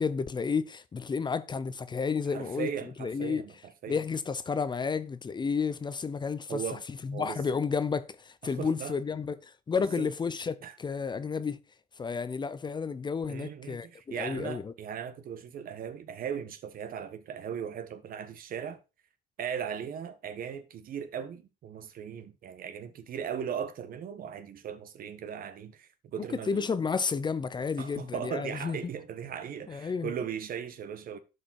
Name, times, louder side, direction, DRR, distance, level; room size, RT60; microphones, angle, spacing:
voice 1, 0.0-2.7 3.0-3.4 3.9-6.6 7.0-11.6 12.0-13.9 14.2-14.7 26.3-28.8 29.7-30.1, left 5 dB, 25° left, 0.6 m, -31 dB
voice 2, 2.3-4.0 6.5-6.8 7.1-7.4 8.4-8.9 10.0-10.1 10.6-10.7 13.3-18.8 19.4-26.7 27.8-31.2, right 8 dB, 60° right, 1.3 m, -38 dB
11.5 x 5.0 x 4.3 m
cardioid pair, 110°, 17 cm